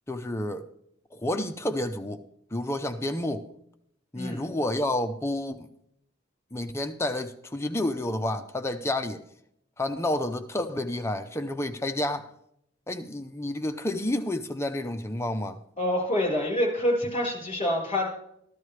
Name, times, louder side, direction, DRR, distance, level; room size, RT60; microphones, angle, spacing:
voice 1, 0.1-0.7 1.1-2.2 2.5-3.5 4.1-5.7 6.5-9.2 9.8-12.3 12.9-15.6, left 1 dB, 15° left, 0.6 m, -30 dB
voice 2, 15.8-18.1, left 1 dB, 35° left, 4.4 m, -26 dB
14.0 x 12.5 x 3.3 m
head